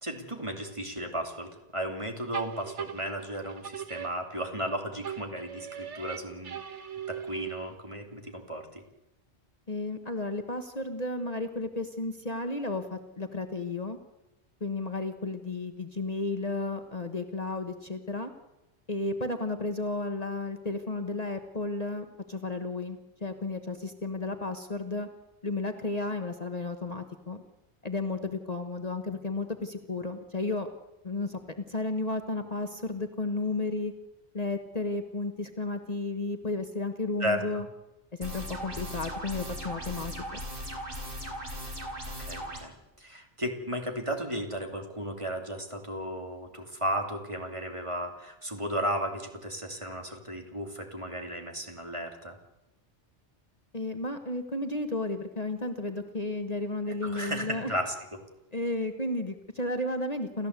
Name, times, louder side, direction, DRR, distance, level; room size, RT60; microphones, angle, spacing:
voice 1, 0.0-6.6 7.1-8.8 37.2-37.6 42.2-52.4 56.9-57.9, equal, 25° right, 4 dB, 2.8 m, -34 dB
sound 1, 2.3-4.7 5.0-7.9, right 8 dB, 85° right, 1.6 m, -39 dB
voice 2, 9.7-14.0 14.6-18.3 18.9-25.1 25.4-27.4 27.8-30.7 31.0-31.4 31.7-33.9 34.3-37.6 38.2-40.1 53.7-57.7 58.5-60.5, left 2 dB, 35° left, 6 dB, 1.4 m, -33 dB
sound 2, 38.2-42.6, equal, 50° right, 4.2 m, -38 dB
29.0 x 14.5 x 8.2 m, 0.96 s
omnidirectional pair, 1.2 m